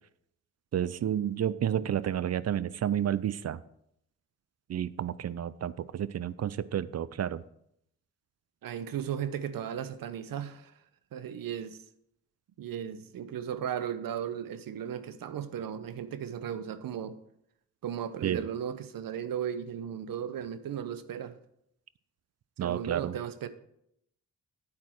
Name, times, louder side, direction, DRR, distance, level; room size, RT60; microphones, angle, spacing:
voice 1, 0.7-3.6 4.7-7.4 18.2-18.4 22.6-23.1, right 10 dB, 45° right, 0.5 m, -30 dB
voice 2, 8.6-10.7 11.1-11.8 12.6-17.2 17.8-21.3 22.6-23.5, right 9 dB, 70° right, 0.8 m, -36 dB
8.7 x 8.3 x 4.5 m
supercardioid pair, 50°, 36 cm